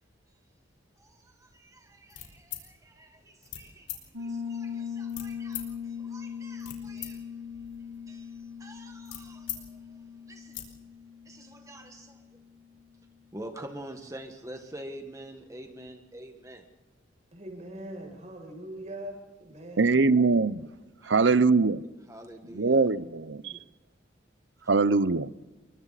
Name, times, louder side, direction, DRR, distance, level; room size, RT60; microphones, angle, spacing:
voice 1, 1.0-7.3 8.1-9.8 10.3-10.7 11.2-12.2 13.3-16.6 21.0-21.4 22.1-22.8 23.4-23.6, right 1 dB, 15° right, 1.6 m, -46 dB
sound 1, 2.1-2.7 3.4-3.6 3.9-4.0 5.1-5.7 6.4-7.1 7.4-9.6 10.0-10.1 10.4-10.7, left 11 dB, 65° left, 4.7 m, -40 dB
Piano, 4.1-12.7, left 7 dB, 90° right, 2.0 m, -40 dB
voice 2, 17.3-20.2, right 1 dB, 40° right, 7.1 m, -42 dB
voice 3, 19.8-20.7 21.1-21.8 22.5-23.5 24.7-25.3, right 4 dB, 70° right, 0.7 m, -22 dB
30.0 x 23.5 x 4.2 m
head